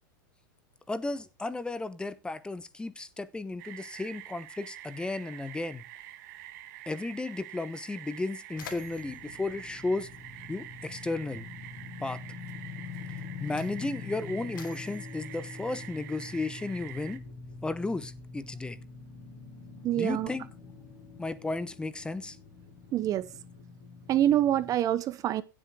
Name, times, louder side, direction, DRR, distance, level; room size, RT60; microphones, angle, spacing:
voice 1, 0.9-5.8 6.9-10.1 10.5-11.5 12.0-12.2 13.4-17.2 17.6-18.8 20.0-20.5 21.2-22.4, left 2 dB, 10° left, 0.9 m, -34 dB
sound 1, 3.6-17.2, right 13 dB, 55° right, 1.6 m, -47 dB
Mechanisms, 8.1-10.8 11.8-11.9 12.8-16.3, left 8 dB, 75° left, 3.0 m, -52 dB
sound 2, 8.6-24.8, left 4 dB, 30° left, 5.0 m, -45 dB
voice 2, 19.8-20.3 22.9-23.3 24.1-25.4, right 12 dB, 30° right, 0.8 m, -26 dB
16.0 x 7.8 x 3.7 m
hypercardioid pair, 120°, 11 cm